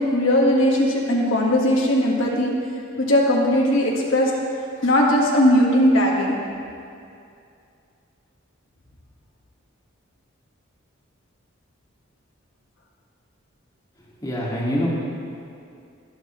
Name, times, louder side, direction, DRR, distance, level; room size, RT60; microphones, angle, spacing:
voice 1, 0.0-2.5 3.0-4.3 4.8-6.4, left 1 dB, 75° left, -2 dB, 1.5 m, -18 dB
voice 2, 14.2-14.9, equal, 20° left, -6 dB, 2.0 m, -24 dB
21.0 x 7.9 x 3.1 m, 2.5 s
head